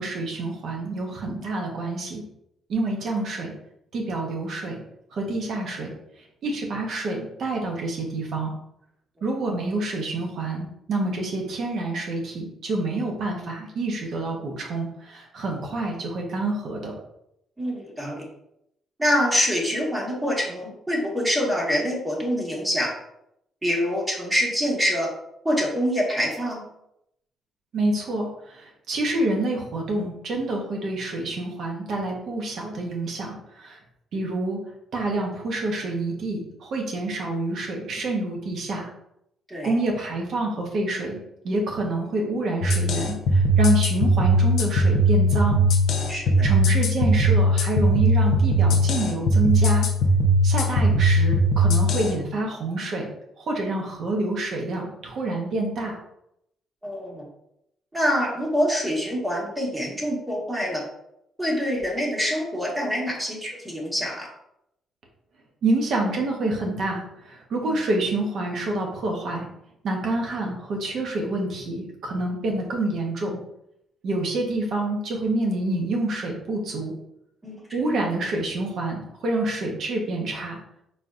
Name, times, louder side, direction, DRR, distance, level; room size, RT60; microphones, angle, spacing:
voice 1, 0.0-2.2 2.7-3.5 3.9-4.8 5.1-5.9 6.4-8.5 9.2-16.9 27.7-33.8 34.1-34.6 34.9-38.9 39.6-41.2 41.4-45.6 46.4-49.9 50.4-53.1 53.4-56.0 65.6-69.5 69.8-73.4 74.0-76.9 77.7-80.6, right 2 dB, 65° right, 0 dB, 1.2 m, -27 dB
voice 2, 17.6-18.2 19.0-22.9 23.6-25.1 25.4-26.6 39.5-39.7 46.1-46.5 56.8-57.3 57.9-60.8 61.4-64.3 67.6-67.8 77.4-77.9, equal, 15° right, -3 dB, 1.7 m, -25 dB
sound 1, 42.6-52.1, right 1 dB, 80° left, 0.7 m, -19 dB
4.4 x 4.1 x 2.6 m, 0.79 s
cardioid pair, 90°, 0 cm